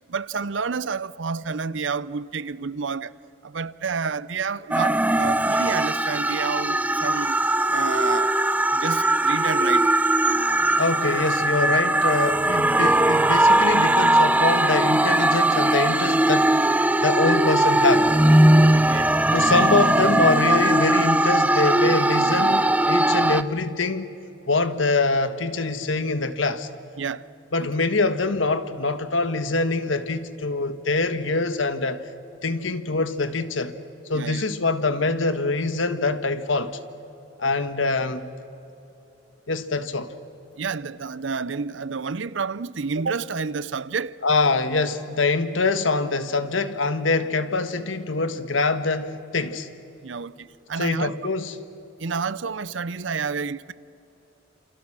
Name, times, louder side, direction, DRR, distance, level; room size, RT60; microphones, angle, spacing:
voice 1, 0.1-3.1 3.4-7.4 7.7-8.3 8.7-9.9 18.5-19.1 27.0-27.2 27.6-27.7 34.1-34.4 40.6-44.2 50.0-51.1 52.0-53.7, right 5 dB, 75° right, 0.7 m, -29 dB
sound 1, 4.7-23.4, right 1 dB, 10° right, 0.6 m, -20 dB
voice 2, 10.8-16.6 17.0-18.1 19.3-24.1 24.5-26.7 27.5-32.0 32.4-33.8 34.1-36.8 37.4-38.3 39.5-40.1 44.2-49.7 50.8-51.5, left 3 dB, 85° left, 1.4 m, -24 dB
29.0 x 28.0 x 6.2 m
head